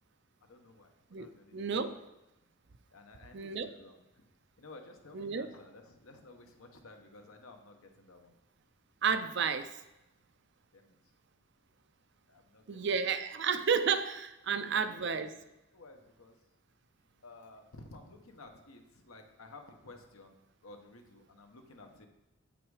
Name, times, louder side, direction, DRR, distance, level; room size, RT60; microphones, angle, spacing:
voice 1, 0.4-2.0 2.9-4.3 4.6-8.3 10.7-11.1 12.3-13.1 13.6-13.7 14.5-15.2 15.7-16.4 17.2-22.1, left 2 dB, 80° left, 4 dB, 1.1 m, -54 dB
voice 2, 1.1-2.0 3.3-3.7 5.1-5.5 9.0-9.7 12.7-15.3, right 6 dB, 55° right, 11 dB, 0.5 m, -31 dB
8.3 x 5.9 x 4.8 m, 0.96 s
head